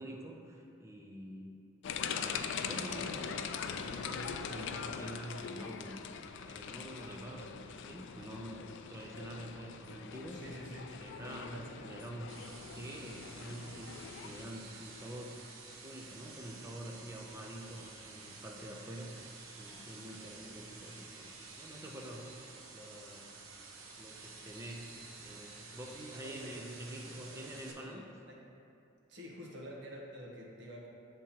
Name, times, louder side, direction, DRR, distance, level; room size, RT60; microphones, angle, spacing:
voice 1, 0.0-1.6 2.1-3.4 3.7-6.0 6.5-10.4 10.9-12.4 12.7-15.4 15.8-19.1 19.5-22.3 22.7-23.4 24.0-24.9 25.2-28.1, right 1 dB, 15° right, -1 dB, 0.5 m, -47 dB
sound 1, 1.8-14.4, left 6 dB, 60° left, 0.3 m, -42 dB
voice 2, 10.3-10.9 11.2-11.8 25.9-26.8 27.2-28.4 29.1-30.9, equal, 60° right, -3 dB, 1.1 m, -48 dB
sound 2, 12.3-27.7, right 3 dB, 80° right, 0.8 m, -51 dB
10.0 x 3.7 x 2.9 m, 2.6 s
head